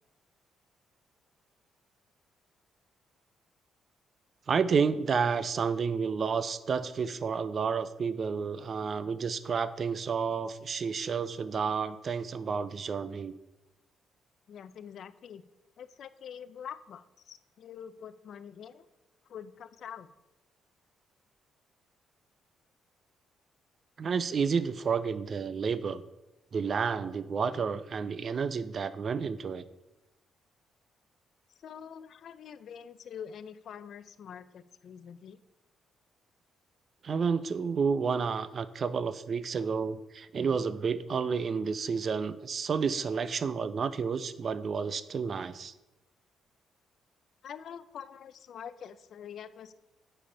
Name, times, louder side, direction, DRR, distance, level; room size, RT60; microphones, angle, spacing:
voice 1, 4.5-13.3 24.0-26.0 26.5-29.6 37.0-45.7, right 5 dB, 45° right, 14 dB, 0.5 m, -30 dB
voice 2, 14.5-15.4 15.8-18.9 19.3-20.1 31.6-35.4 47.4-49.7, left 8 dB, 65° left, 13 dB, 0.5 m, -45 dB
8.7 x 5.1 x 5.5 m, 0.96 s
cardioid pair, 90°, 0 cm